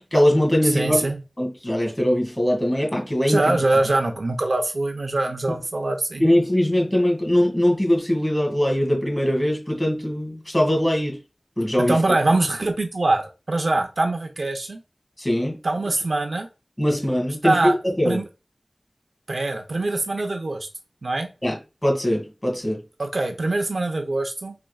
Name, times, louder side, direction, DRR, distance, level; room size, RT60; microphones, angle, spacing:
voice 1, 0.1-1.0 1.4-3.6 6.2-11.2 11.6-12.1 15.2-15.6 16.8-18.2 21.4-22.8, equal, 30° left, 2.1 m, -21 dB
voice 2, 0.7-1.2 3.3-6.3 11.9-14.8 15.6-16.5 17.4-17.8 18.0-18.3 19.3-20.7 21.0-21.3 23.0-24.5, right 2 dB, 90° right, 0.8 m, -23 dB
5.0 x 4.3 x 2.3 m
wide cardioid pair, 50°, 0 cm